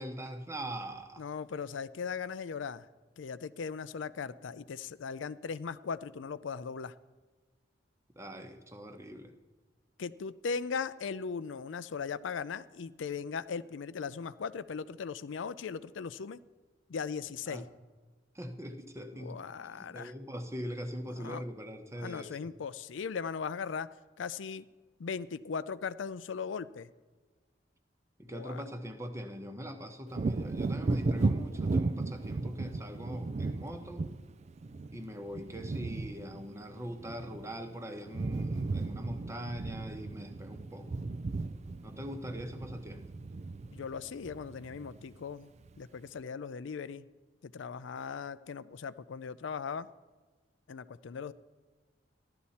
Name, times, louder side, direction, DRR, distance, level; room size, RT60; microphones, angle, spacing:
voice 1, 0.0-1.3 8.1-9.3 17.5-17.6 18.3-19.4 19.8-22.4 28.2-34.0 34.9-40.9 41.8-43.1, equal, 15° right, 6 dB, 1.0 m, -42 dB
voice 2, 1.2-2.9 3.2-6.9 10.0-16.4 16.9-17.6 19.1-20.1 21.1-21.4 22.0-23.9 24.2-24.7 25.0-26.9 28.3-28.6 43.7-45.5 45.8-47.1 47.4-49.9 50.7-51.3, left 5 dB, 80° left, 15 dB, 0.4 m, -38 dB
Wind / Thunder, 30.1-37.7 38.0-45.2 45.6-45.8, right 3 dB, 35° right, 0.4 m, -35 dB
15.0 x 11.5 x 4.2 m, 1.3 s
head